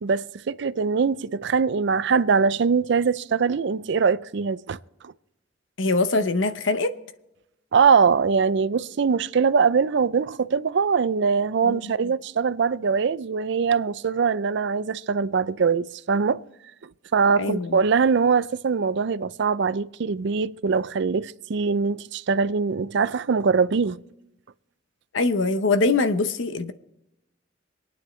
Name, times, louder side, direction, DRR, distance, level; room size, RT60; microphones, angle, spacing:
voice 1, 0.0-4.8 5.0-5.1 7.7-16.4 17.1-24.0, right 5 dB, 65° right, 0.4 m, -22 dB
voice 2, 5.8-6.9 11.6-11.9 17.4-17.8 25.1-26.7, left 3 dB, 75° left, 0.9 m, -23 dB
26.0 x 9.6 x 3.2 m
head